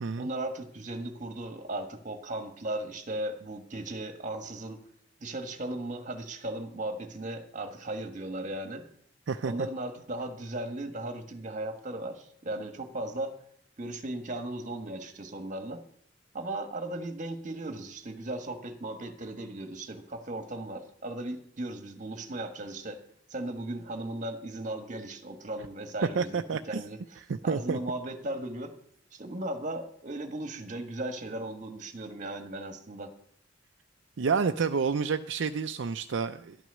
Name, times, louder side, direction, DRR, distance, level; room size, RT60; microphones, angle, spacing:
voice 1, 0.2-4.8 5.2-8.9 9.4-13.4 13.8-15.8 16.3-23.0 23.3-28.7 29.1-33.1, right 1 dB, 40° right, 7 dB, 1.5 m, -37 dB
voice 2, 26.2-26.8 27.5-27.8 34.2-36.6, right 5 dB, 70° right, 7 dB, 0.5 m, -29 dB
12.0 x 6.2 x 9.4 m, 0.66 s
head